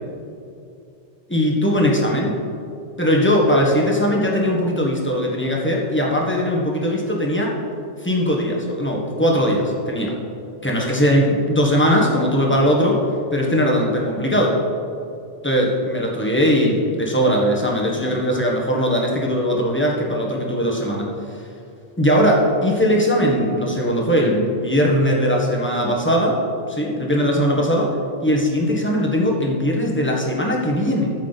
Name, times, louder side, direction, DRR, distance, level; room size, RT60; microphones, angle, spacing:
voice 1, 1.3-2.4 3.0-7.5 8.0-10.2 10.6-13.0 13.3-14.6 15.4-21.4 22.0-26.4 26.7-27.9 28.2-31.1, equal, 10° left, -2 dB, 1.5 m, -19 dB
13.0 x 7.3 x 4.1 m, 2.6 s
omnidirectional pair, 1.2 m